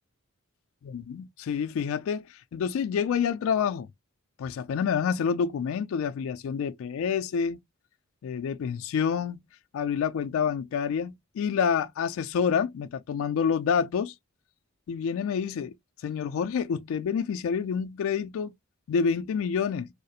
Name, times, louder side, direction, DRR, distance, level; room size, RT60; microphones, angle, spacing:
voice 1, 0.9-2.2 2.5-3.9 4.4-7.6 8.2-9.4 9.7-14.1 14.9-15.7 16.0-18.5 18.9-19.9, left 6 dB, 70° left, 0.3 m, -28 dB
2.3 x 2.0 x 2.7 m
head